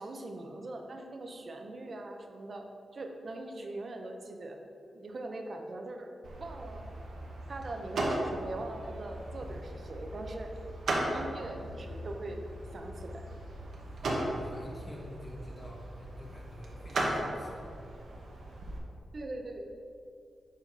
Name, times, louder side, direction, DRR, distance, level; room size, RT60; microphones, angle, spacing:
voice 1, 0.0-2.6 2.9-4.6 4.9-6.1 6.4-6.8 7.5-10.5 10.9-12.4 12.7-13.3 19.1-19.7, right 2 dB, 55° right, 3 dB, 0.6 m, -41 dB
sound 1, 6.2-18.8, right 1 dB, 75° right, 1.0 m, -37 dB
voice 2, 14.0-17.7, equal, 25° left, -2 dB, 1.2 m, -48 dB
7.2 x 2.8 x 5.3 m, 2.5 s
cardioid pair, 75°, 0 cm